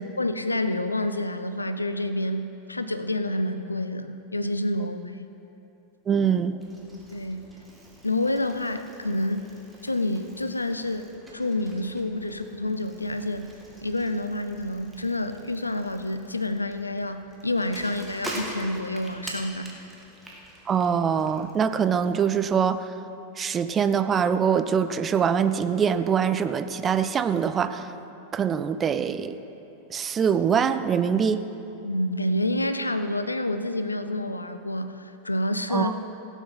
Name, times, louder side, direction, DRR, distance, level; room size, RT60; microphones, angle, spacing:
voice 1, 0.0-5.3 7.1-7.5 8.0-9.5 9.8-11.1 11.3-13.5 13.8-19.8 31.8-36.0, left 1 dB, 80° left, 10 dB, 0.5 m, -28 dB
voice 2, 6.1-6.6 20.7-22.9 23.4-27.9 28.3-29.4 29.9-31.4 35.7-35.9, right 7 dB, 25° right, 11 dB, 0.5 m, -23 dB
Bicycle, 6.6-22.1, right 1 dB, 5° right, 1.9 m, -44 dB
16.5 x 7.3 x 5.8 m, 2.9 s
figure-of-eight pair, 90°, 0 cm